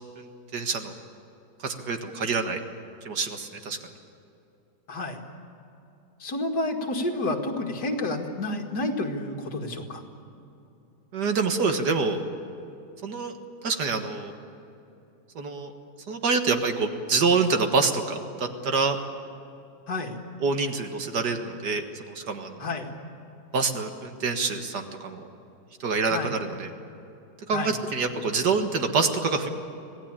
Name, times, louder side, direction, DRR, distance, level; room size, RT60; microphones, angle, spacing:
voice 1, 0.2-0.9 1.6-2.6 3.1-3.8 11.1-12.2 13.0-13.3 13.6-14.3 15.4-15.7 16.1-19.0 20.4-22.7 23.5-25.2 25.8-26.7 27.5-29.5, right 4 dB, 65° right, 6 dB, 2.1 m, -26 dB
voice 2, 4.9-5.2 6.2-10.0 19.9-20.2 22.6-22.9 26.1-26.4 27.5-27.7, left 2 dB, 65° left, 3 dB, 2.6 m, -30 dB
25.5 x 17.5 x 8.9 m, 2.8 s
omnidirectional pair, 1.9 m